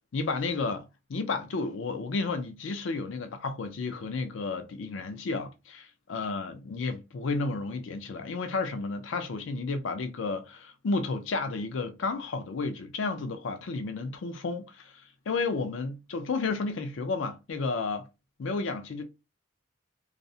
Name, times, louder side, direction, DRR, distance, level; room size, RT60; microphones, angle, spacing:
voice 1, 0.1-14.9 15.3-18.1 18.4-19.0, left 3 dB, 85° left, 0.4 m, -32 dB
2.4 x 2.0 x 2.6 m
head